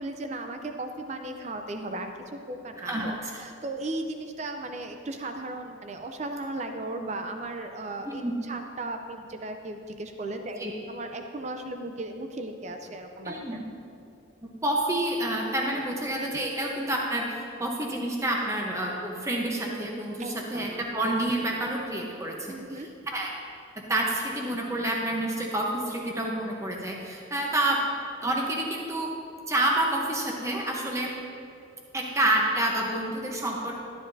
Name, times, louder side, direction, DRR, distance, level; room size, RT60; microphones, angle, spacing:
voice 1, 0.0-8.2 8.5-10.6 10.9-13.6 20.2-20.7 22.5-22.9, right 2 dB, 35° right, 5 dB, 0.5 m, -36 dB
voice 2, 2.8-3.1 8.0-8.3 10.6-10.7 13.2-13.6 14.4-23.3 23.8-27.8 28.2-29.1 29.5-31.1 31.9-33.8, right 1 dB, 15° right, -1 dB, 0.9 m, -28 dB
12.5 x 10.5 x 2.7 m, 2.5 s
head